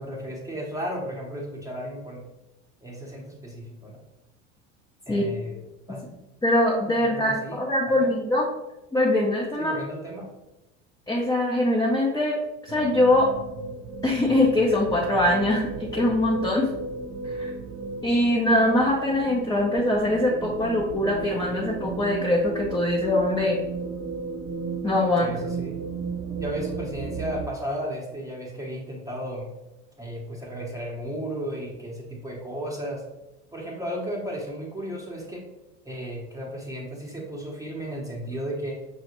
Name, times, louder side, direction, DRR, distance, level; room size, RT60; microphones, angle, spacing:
voice 1, 0.0-2.2 2.8-4.0 5.1-5.6 5.9-6.1 7.1-8.1 9.6-10.3 25.2-25.8 26.4-29.5 30.0-33.0 33.5-35.5 35.8-38.8, equal, 10° right, -2 dB, 0.8 m, -34 dB
voice 2, 6.4-8.5 8.9-9.8 11.1-13.3 14.0-16.7 17.3-17.5 18.0-23.6 24.8-25.3, left 1 dB, 10° left, -2 dB, 0.5 m, -23 dB
sound 1, 12.7-27.5, right 4 dB, 45° right, 0.6 m, -34 dB
5.8 x 2.0 x 3.0 m, 0.98 s
hypercardioid pair, 90°, 35 cm